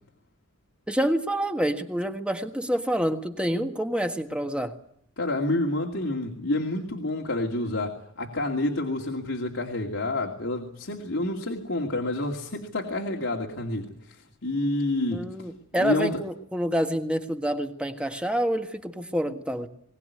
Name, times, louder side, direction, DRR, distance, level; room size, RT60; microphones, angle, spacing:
voice 1, 0.9-4.7 15.1-19.7, equal, 5° right, 6 dB, 1.5 m, -27 dB
voice 2, 5.2-15.3 15.8-16.1, left 2 dB, 75° left, 0 dB, 2.5 m, -28 dB
21.5 x 18.5 x 9.6 m, 0.70 s
head